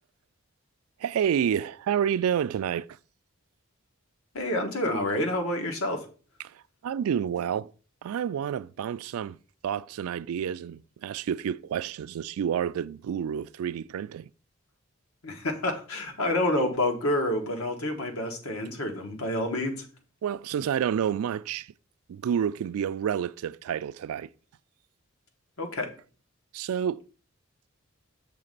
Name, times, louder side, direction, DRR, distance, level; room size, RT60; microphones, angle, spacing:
voice 1, 1.0-2.9 6.4-7.7 8.0-14.3 20.2-21.7 22.1-24.3 26.5-27.0, right 8 dB, 85° right, 0.3 m, -29 dB
voice 2, 4.3-6.1 15.2-19.9 25.6-25.9, left 1 dB, 85° left, 1.3 m, -28 dB
6.8 x 3.2 x 5.2 m
head